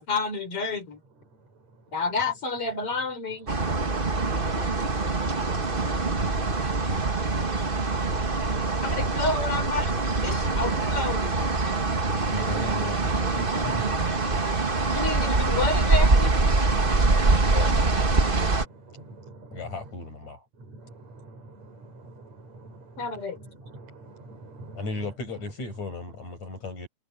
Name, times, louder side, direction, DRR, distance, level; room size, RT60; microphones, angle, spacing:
voice 1, 0.0-1.0 1.9-3.6 8.8-9.9 10.2-11.3 14.9-16.3 23.0-23.4, left 3 dB, 50° left, 5.5 m, -29 dB
voice 2, 1.1-2.4 2.7-2.8 15.9-26.2 26.5-26.7, right 2 dB, 65° right, 8.4 m, -48 dB
sound 1, 3.5-18.6, right 3 dB, 25° right, 1.1 m, -24 dB
voice 3, 12.2-14.2 17.5-17.8 19.5-20.4 24.8-26.9, left 3 dB, 65° left, 9.0 m, -36 dB
omnidirectional pair, 3.4 m